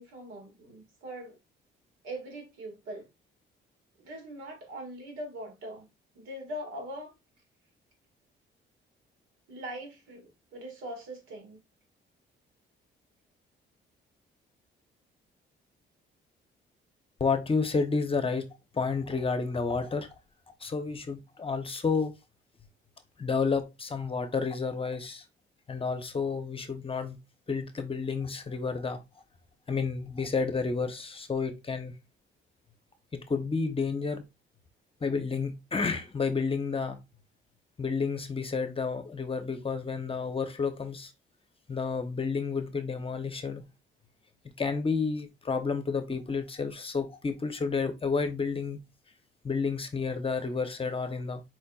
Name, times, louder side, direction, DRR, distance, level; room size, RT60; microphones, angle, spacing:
voice 1, 0.0-1.4 2.0-3.1 4.0-5.9 6.2-7.1 9.5-11.6, right 1 dB, 90° right, 1.9 m, -41 dB
voice 2, 17.2-18.5 18.7-20.1 20.6-22.1 23.2-25.2 25.7-27.2 27.5-29.0 29.7-31.9 33.1-34.2 35.0-37.0 37.8-41.1 41.7-43.6 44.6-48.8 49.4-51.4, left 4 dB, 25° left, 0.9 m, -30 dB
4.6 x 4.2 x 2.4 m
cardioid pair, 90°, 20 cm